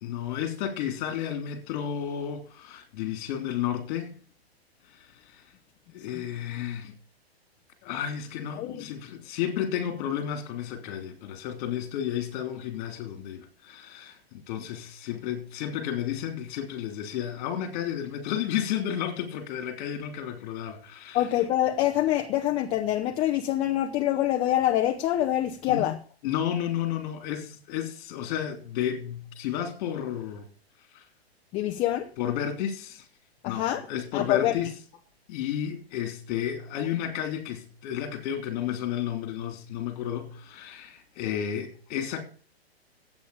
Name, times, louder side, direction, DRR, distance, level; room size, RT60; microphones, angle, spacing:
voice 1, 0.0-4.1 5.3-5.4 5.9-6.9 7.8-21.3 25.7-25.9 26.2-30.5 30.9-31.0 32.2-33.0 33.4-34.7 35.3-42.2, left 10 dB, 35° left, 3.4 m, -32 dB
voice 2, 8.5-8.9 21.1-26.0 31.5-32.1 33.4-33.8 34.1-34.5, left 13 dB, 20° left, 0.6 m, -25 dB
11.5 x 8.8 x 7.0 m
hypercardioid pair, 150°, 32 cm